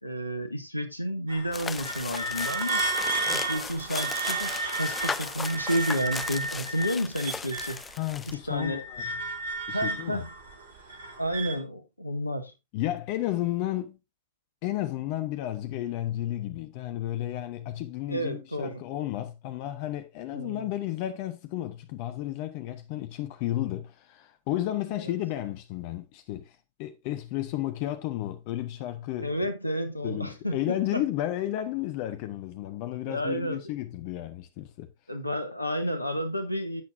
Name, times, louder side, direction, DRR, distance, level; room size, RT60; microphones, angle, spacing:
voice 1, 0.0-2.9 3.3-7.8 8.3-8.8 9.7-10.3 11.2-12.5 18.1-18.8 20.3-20.7 25.0-25.1 29.2-31.0 33.1-33.6 35.1-36.8, equal, 85° left, 1.8 m, -31 dB
sound 1, 1.3-7.9 8.3-11.6, right 2 dB, 65° right, 2.5 m, -32 dB
sound 2, 1.5-8.3, left 5 dB, 15° left, 0.7 m, -37 dB
voice 2, 8.0-9.1 9.7-10.2 10.9-11.0 12.7-14.0 14.6-29.3 30.0-34.9, left 14 dB, 45° left, 0.9 m, -32 dB
11.5 x 8.4 x 2.6 m
figure-of-eight pair, 90°, 0 cm